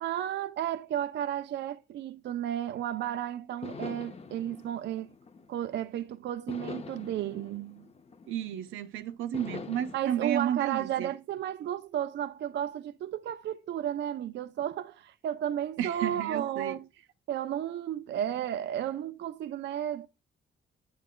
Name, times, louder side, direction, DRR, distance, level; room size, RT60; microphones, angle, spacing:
voice 1, 0.0-5.1 5.5-7.9 9.9-16.9 17.3-20.1, right 11 dB, 60° right, 0.5 m, -33 dB
sound 1, 3.0-3.1 3.6-5.9 6.5-8.7 9.3-10.0, left 4 dB, 30° left, 0.9 m, -44 dB
voice 2, 8.3-11.1 15.8-16.8, right 10 dB, 85° right, 0.8 m, -32 dB
10.0 x 8.7 x 2.2 m
cardioid pair, 90°, 20 cm